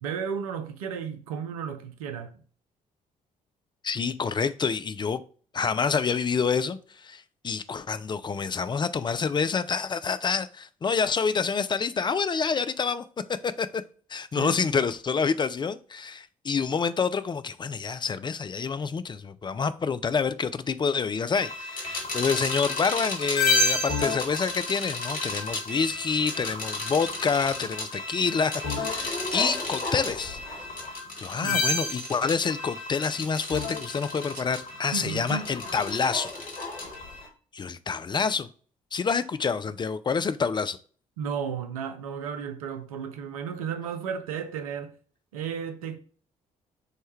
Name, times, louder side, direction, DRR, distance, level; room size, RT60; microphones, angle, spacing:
voice 1, 0.0-2.4 14.4-14.8 31.4-31.6 34.3-34.4 34.9-35.5 41.2-45.0 45.3-46.0, right 7 dB, 80° right, 0.5 m, -34 dB
voice 2, 3.8-5.2 5.5-13.0 13.4-13.8 14.1-30.4 31.2-36.3 37.5-38.5 38.9-40.8, left 5 dB, 25° left, 0.4 m, -27 dB
sound 1, 21.3-37.3, left 3 dB, 50° left, 1.4 m, -31 dB
6.4 x 2.2 x 3.0 m
figure-of-eight pair, 45°, 18 cm